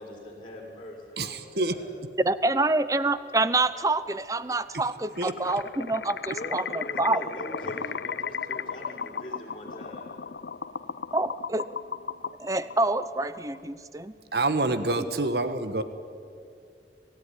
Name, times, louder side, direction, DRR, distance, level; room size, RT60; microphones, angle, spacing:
voice 1, 0.0-1.9 6.3-10.0, left 1 dB, 30° left, -4 dB, 6.0 m, -41 dB
voice 2, 1.2-1.8 5.2-5.4 14.3-15.8, right 2 dB, 60° right, 10 dB, 1.4 m, -27 dB
voice 3, 2.2-7.3 11.1-11.8 12.4-14.1, right 2 dB, 20° right, 15 dB, 0.7 m, -27 dB
sound 1, 5.1-13.6, left 6 dB, 70° left, 0.6 m, -36 dB
27.0 x 16.0 x 9.9 m, 2.4 s
head